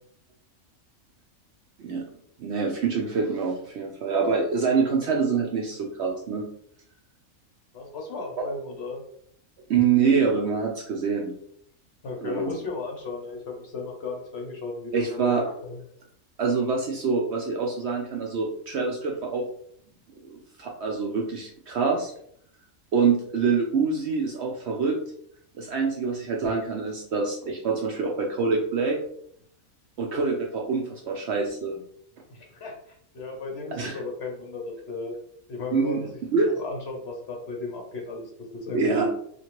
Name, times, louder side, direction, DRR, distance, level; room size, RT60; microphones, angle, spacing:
voice 1, 2.4-6.5 8.4-8.5 9.7-11.3 12.2-12.5 14.9-15.4 16.4-19.4 20.3-22.1 22.9-25.0 25.6-29.0 30.0-31.8 33.7-34.0 35.7-36.0 36.3-36.6 38.7-39.1, right 5 dB, 65° right, 0 dB, 0.7 m, -25 dB
voice 2, 7.7-9.0 12.0-15.4 15.6-15.8 32.3-32.7 33.1-35.1 35.5-36.2 36.6-39.1, left 3 dB, 55° left, 0 dB, 0.8 m, -34 dB
2.9 x 2.5 x 2.9 m, 0.65 s
omnidirectional pair, 1.5 m